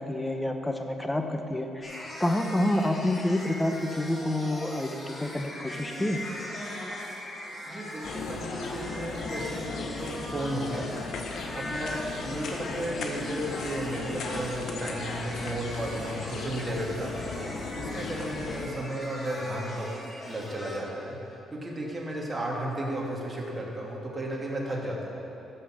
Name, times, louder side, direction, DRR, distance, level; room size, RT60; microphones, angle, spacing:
voice 1, 0.0-1.8 2.2-6.2, left 1 dB, 10° left, 5 dB, 0.9 m, -28 dB
sound 1, 1.8-20.8, left 1 dB, 35° left, 2.4 m, -41 dB
voice 2, 7.7-10.9 11.5-25.1, right 1 dB, 20° right, -3 dB, 2.3 m, -34 dB
sound 2, 8.0-18.7, left 4 dB, 70° left, 1.0 m, -37 dB
14.0 x 5.6 x 6.4 m, 3.0 s
cardioid pair, 90°, 0 cm